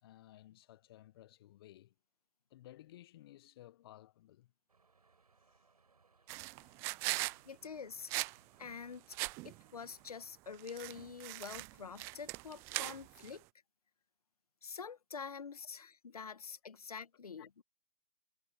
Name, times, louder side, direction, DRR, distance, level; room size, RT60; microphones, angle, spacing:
voice 1, 0.0-1.9 2.5-4.5 7.4-7.5 17.4-17.6, left 14 dB, 40° left, 1.4 m, -57 dB
sound 1, 4.7-10.3, right 4 dB, 75° right, 7.4 m, -70 dB
sound 2, 6.3-7.4 8.1-8.4 8.6-8.7 9.1-9.6 10.5-13.4, right 25 dB, 15° right, 0.3 m, -40 dB
voice 2, 7.4-8.3 8.6-9.2 9.4-13.4 14.6-17.6, left 6 dB, 75° left, 1.4 m, -47 dB
figure-of-eight pair, 135°, 20 cm